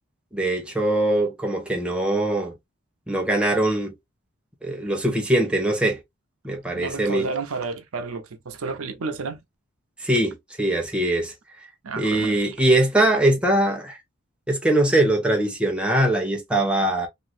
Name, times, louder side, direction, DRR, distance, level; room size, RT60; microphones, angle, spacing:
voice 1, 0.3-2.5 3.1-3.9 4.6-6.0 6.4-7.2 10.0-11.3 12.0-14.0 14.5-17.1, right 1 dB, 5° right, 0.5 m, -22 dB
voice 2, 6.7-9.4 11.8-12.6, right 4 dB, 80° right, 0.6 m, -31 dB
3.0 x 2.5 x 2.5 m
head